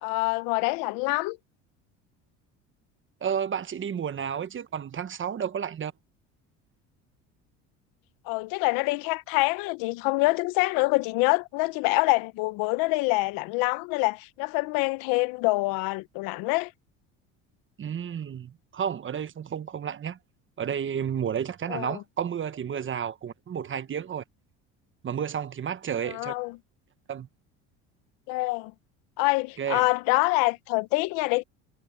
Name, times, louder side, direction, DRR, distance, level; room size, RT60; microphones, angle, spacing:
voice 1, 0.0-1.4 8.3-16.7 21.7-22.0 26.1-26.5 28.3-28.7 29.2-31.4, left 23 dB, 75° left, 1.1 m, -26 dB
voice 2, 3.2-5.9 17.8-20.2 20.6-24.2 25.0-26.3 27.1-27.3 29.6-29.9, right 8 dB, 35° right, 1.4 m, -31 dB
supercardioid pair, 95°, 34 cm